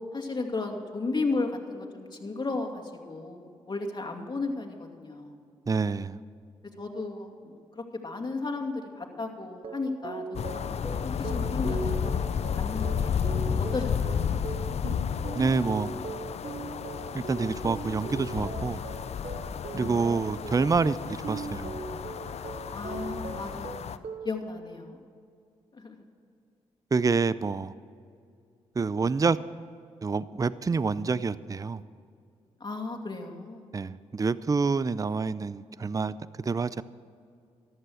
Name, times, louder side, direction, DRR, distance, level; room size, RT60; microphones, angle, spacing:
voice 1, 0.1-5.4 6.8-10.6 10.8-13.2 13.5-14.3 19.7-20.4 22.7-25.0 25.7-26.0 32.6-33.7, left 3 dB, 35° left, 2.4 m, -35 dB
voice 2, 5.7-6.2 15.4-15.9 17.1-18.8 19.7-21.8 26.9-27.7 28.8-29.4 30.0-31.8 33.7-36.8, right 4 dB, 30° right, 0.5 m, -27 dB
sound 1, 9.5-24.4, right 5 dB, 50° right, 0.9 m, -40 dB
sound 2, 10.3-24.0, left 7 dB, 60° left, 0.7 m, -32 dB
14.5 x 11.0 x 6.4 m
supercardioid pair, 50°, 13 cm